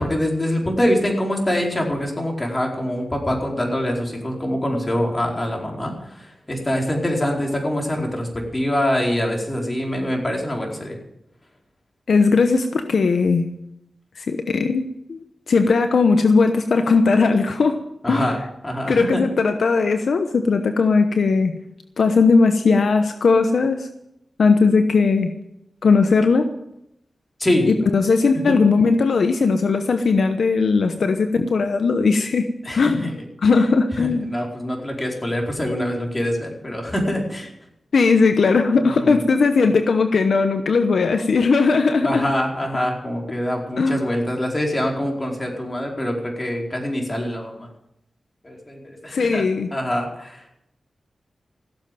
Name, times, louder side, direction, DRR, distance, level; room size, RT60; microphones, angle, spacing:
voice 1, 0.0-11.0 18.0-18.4 18.6-19.2 27.4-27.7 28.5-28.6 32.6-33.1 33.4-33.5 34.0-37.5 38.8-39.2 42.0-47.7 48.4-49.5 49.7-50.4, left 1 dB, 25° left, 0 dB, 4.6 m, -24 dB
voice 2, 12.1-13.5 14.2-14.8 15.1-15.2 15.5-17.8 18.1-18.3 18.9-21.5 22.0-23.9 24.4-25.3 25.8-26.5 27.6-33.1 33.4-34.3 37.9-42.2 43.8-44.1 49.1-49.7, left 4 dB, 75° left, 7 dB, 1.0 m, -18 dB
16.0 x 7.7 x 9.3 m, 0.83 s
cardioid pair, 65°, 0 cm